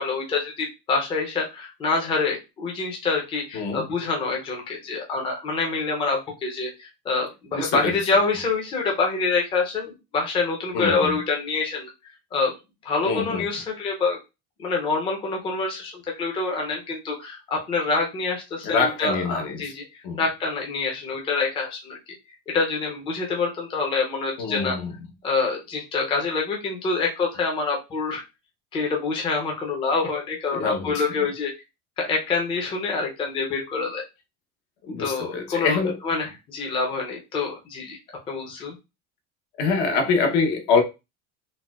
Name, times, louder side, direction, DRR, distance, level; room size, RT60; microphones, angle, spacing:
voice 1, 0.0-11.9 12.3-12.5 12.8-14.2 14.6-19.8 20.2-21.9 22.5-24.8 25.2-28.2 28.7-31.5 32.0-34.0 35.0-35.8 36.0-38.0 38.3-38.7, left 4 dB, 15° left, 0.5 m, -26 dB
voice 2, 3.5-3.9 7.5-8.0 10.7-11.2 13.0-13.4 18.6-19.7 20.0-20.2 24.4-24.9 30.5-31.1 34.8-36.0 39.6-40.8, left 4 dB, 75° left, 0.9 m, -25 dB
4.0 x 2.1 x 2.3 m
cardioid pair, 170°, 32 cm